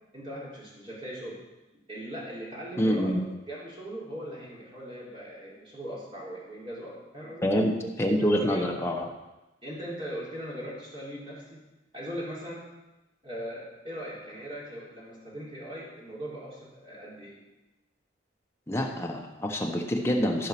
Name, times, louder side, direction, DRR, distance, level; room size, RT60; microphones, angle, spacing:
voice 1, 0.1-1.4 1.9-3.2 3.5-7.5 7.8-7.9 8.2-8.9 9.6-11.6 11.9-12.7 13.2-17.4, equal, 25° right, -6 dB, 3.6 m, -39 dB
voice 2, 2.8-3.2 7.4-7.7 8.0-9.1 18.7-20.5, equal, 15° left, 1 dB, 1.1 m, -26 dB
14.0 x 5.6 x 6.0 m, 1.0 s
head